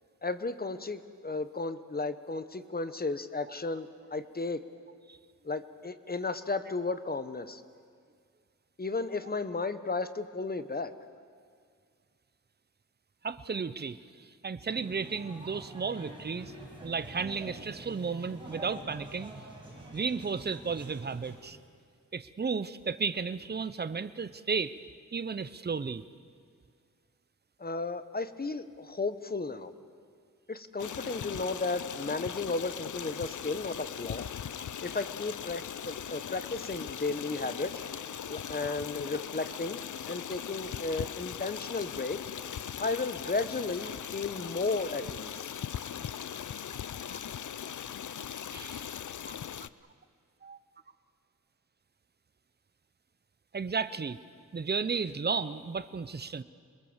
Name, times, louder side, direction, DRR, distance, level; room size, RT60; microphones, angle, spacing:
voice 1, 0.2-4.6 5.4-7.6 8.8-10.9 27.6-29.7 30.5-34.3 34.8-37.8 38.3-39.8 40.1-42.2 42.8-45.5, left 3 dB, 30° left, 12 dB, 1.0 m, -34 dB
voice 2, 13.2-14.0 14.4-16.5 16.8-19.3 19.9-21.6 22.1-24.7 25.1-26.0 38.3-38.4 47.0-47.2 48.5-48.9 49.3-49.4 50.4-50.6 53.5-54.2 54.5-56.4, right 5 dB, 30° right, 13 dB, 0.7 m, -33 dB
sound 1, 14.7-21.4, right 1 dB, 15° right, 6.9 m, -46 dB
Stream, 30.8-49.7, left 9 dB, 65° left, 0.6 m, -39 dB
27.5 x 21.5 x 7.3 m, 2.1 s
wide cardioid pair, 120°, 33 cm